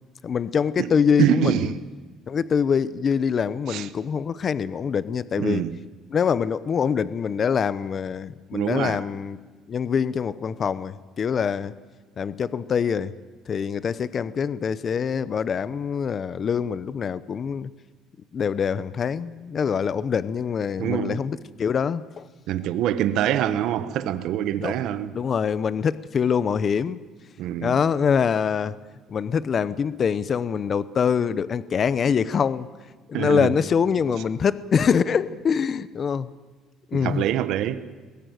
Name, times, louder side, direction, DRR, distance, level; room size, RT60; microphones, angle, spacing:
voice 1, 0.2-1.7 2.3-5.6 6.1-9.4 9.7-11.7 12.2-13.1 13.5-17.7 18.3-22.3 24.6-24.8 25.1-27.0 27.6-28.7 29.1-32.7 33.1-36.3 36.9-37.3, left 6 dB, 35° left, 0.7 m, -24 dB
voice 2, 1.2-1.7 3.7-3.8 5.4-5.8 8.5-9.0 20.8-21.2 22.5-25.1 27.4-27.8 33.1-33.5 36.9-37.8, right 11 dB, 70° right, 1.1 m, -25 dB
21.0 x 17.5 x 9.3 m
cardioid pair, 140°, 0 cm